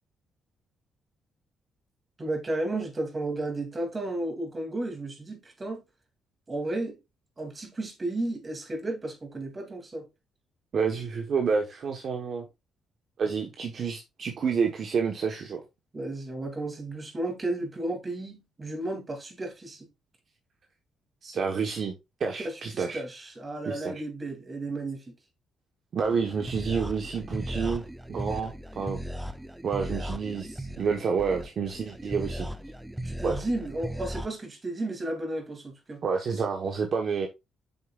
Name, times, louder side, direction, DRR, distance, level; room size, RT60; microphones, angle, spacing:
voice 1, 2.2-5.8 6.5-7.0 7.4-10.1 15.9-19.9 22.4-25.1 33.0-36.0, right 2 dB, 30° right, 2.8 m, -33 dB
voice 2, 10.7-12.4 13.2-15.6 21.2-21.9 22.2-23.0 23.6-24.0 25.9-27.8 28.1-29.0 29.6-32.5 33.2-33.4 36.0-37.3, right 5 dB, 55° right, 1.2 m, -29 dB
sound 1, 26.0-34.3, equal, 10° right, 0.7 m, -37 dB
8.6 x 6.7 x 2.5 m
cardioid pair, 90°, 0 cm